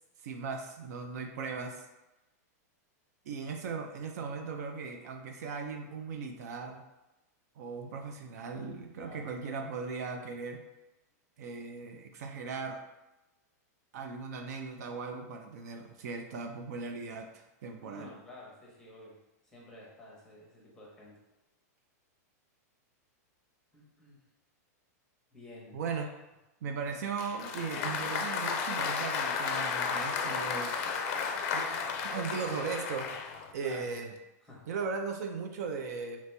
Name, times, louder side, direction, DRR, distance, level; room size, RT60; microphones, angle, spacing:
voice 1, 0.2-1.8 3.3-6.8 7.6-10.6 11.4-12.8 13.9-18.1 25.7-26.1 26.6-30.7 31.5-31.7 32.0-33.2 33.5-34.1 34.7-36.2, right 5 dB, 65° right, 3 dB, 0.4 m, -38 dB
voice 2, 17.7-19.2 19.5-21.2 23.7-24.2 25.3-26.1 33.6-33.9 34.4-34.7, left 1 dB, 5° left, -4 dB, 0.9 m, -50 dB
Applause, 27.2-33.5, left 5 dB, 50° left, 0.4 m, -33 dB
2.9 x 2.9 x 3.3 m, 0.98 s
supercardioid pair, 150°, 9 cm